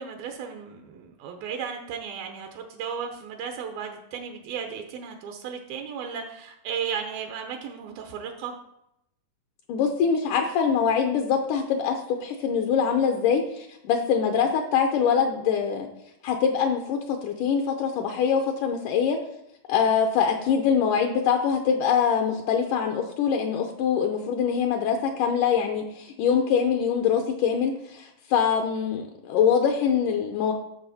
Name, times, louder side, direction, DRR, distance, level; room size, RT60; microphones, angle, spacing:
voice 1, 0.0-8.6 20.3-20.6, right 7 dB, 80° right, 4 dB, 2.7 m, -35 dB
voice 2, 9.7-15.9 16.2-19.2 19.7-30.5, left 7 dB, 75° left, 3 dB, 2.0 m, -24 dB
13.0 x 6.8 x 4.2 m, 0.82 s
omnidirectional pair, 4.3 m